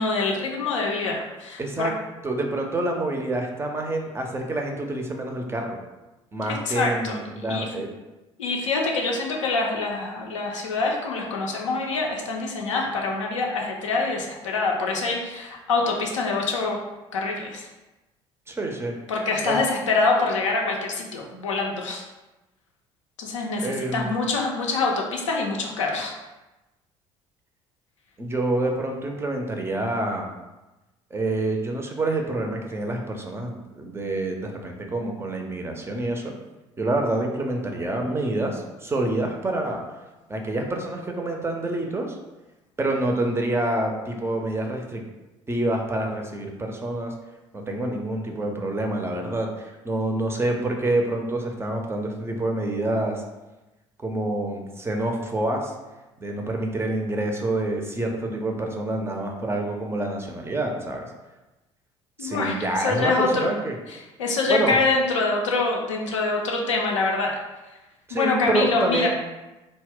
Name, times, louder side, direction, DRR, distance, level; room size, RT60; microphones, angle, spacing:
voice 1, 0.0-1.9 6.4-7.2 7.5-7.7 8.4-16.8 17.1-17.7 19.1-22.0 23.2-26.1 62.2-63.5 63.9-67.4 68.1-69.1, left 3 dB, 80° left, 0 dB, 0.4 m, -25 dB
voice 2, 1.6-1.9 2.2-5.8 6.3-7.9 18.5-18.9 19.4-19.6 23.6-24.1 28.2-30.3 31.1-36.3 36.8-39.8 40.3-42.2 42.8-45.0 45.5-47.1 47.5-53.2 54.0-55.7 56.2-61.1 62.2-63.7 64.5-64.8 68.1-69.1, right 2 dB, 15° right, 2 dB, 0.4 m, -27 dB
2.1 x 2.0 x 3.5 m, 1.1 s
figure-of-eight pair, 55°, 16 cm